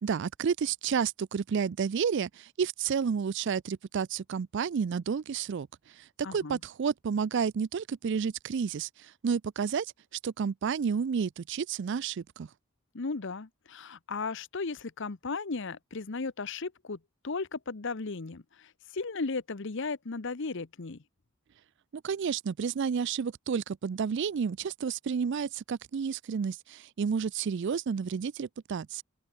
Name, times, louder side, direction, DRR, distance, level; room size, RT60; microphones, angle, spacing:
voice 1, 0.0-12.5 22.0-29.0, right 6 dB, 55° right, 0.4 m, -31 dB
voice 2, 6.2-6.6 12.9-17.0 17.2-21.0, left 4 dB, 60° left, 0.9 m, -36 dB
open air
head